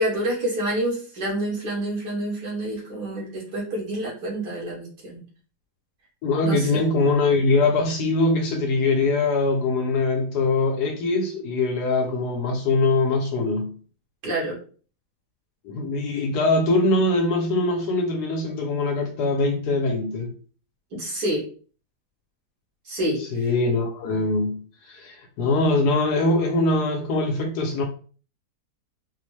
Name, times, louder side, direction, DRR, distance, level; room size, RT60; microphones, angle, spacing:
voice 1, 0.0-5.2 6.4-6.8 14.2-14.6 20.9-21.4 22.9-23.2, right 1 dB, 80° right, 2.0 m, -27 dB
voice 2, 6.2-13.7 15.6-20.3 23.2-27.8, left 2 dB, 75° left, 1.1 m, -22 dB
4.2 x 2.1 x 3.1 m
omnidirectional pair, 1.8 m